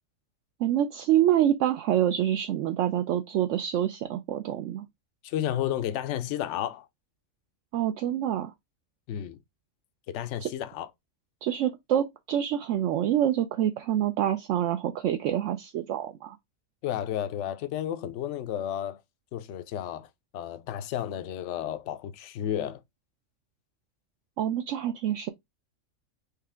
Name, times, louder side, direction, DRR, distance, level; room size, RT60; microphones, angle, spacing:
voice 1, 0.6-4.9 7.7-8.5 10.4-10.5 11.4-16.4 24.4-25.3, right 11 dB, 70° right, 0.9 m, -26 dB
voice 2, 5.2-6.9 9.1-9.4 10.1-10.9 16.8-19.0 19.3-20.1 20.3-22.8, left 11 dB, 70° left, 0.8 m, -32 dB
4.8 x 2.9 x 3.4 m
omnidirectional pair, 1.4 m